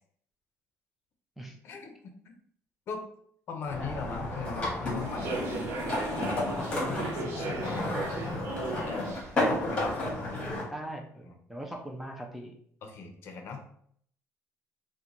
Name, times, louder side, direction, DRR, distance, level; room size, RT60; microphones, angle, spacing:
voice 1, 1.6-2.1 2.9-3.0 3.5-5.5 6.3-6.7 7.2-8.4 8.9-9.2 9.4-10.6 11.2-11.4 12.8-13.6, left 5 dB, 50° left, 5 dB, 0.5 m, -39 dB
sound 1, 3.7-10.6, left 2 dB, 25° left, 1.0 m, -32 dB
Human voice / Subway metro underground, 5.0-10.5, right 4 dB, 55° right, 0.6 m, -38 dB
voice 2, 6.6-7.4 10.7-12.6, right 1 dB, 5° right, 0 dB, 0.3 m, -40 dB
3.8 x 2.1 x 2.9 m, 0.64 s
cardioid pair, 165°, 5 cm